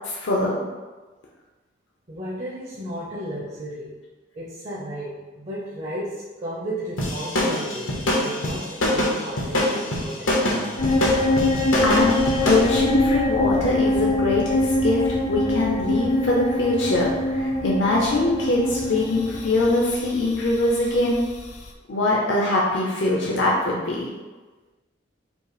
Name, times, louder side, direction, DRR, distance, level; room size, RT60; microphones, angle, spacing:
voice 1, 0.0-0.6 11.8-21.2 21.9-24.1, left 2 dB, 65° left, -4 dB, 0.7 m, -22 dB
voice 2, 2.1-3.9 4.3-10.8, right 1 dB, 35° right, -8 dB, 0.8 m, -34 dB
sound 1, 7.0-12.7, left 1 dB, 85° left, 1.0 m, -23 dB
sound 2, 10.8-21.7, left 2 dB, 35° left, 0.4 m, -24 dB
5.3 x 2.1 x 4.8 m, 1.3 s
head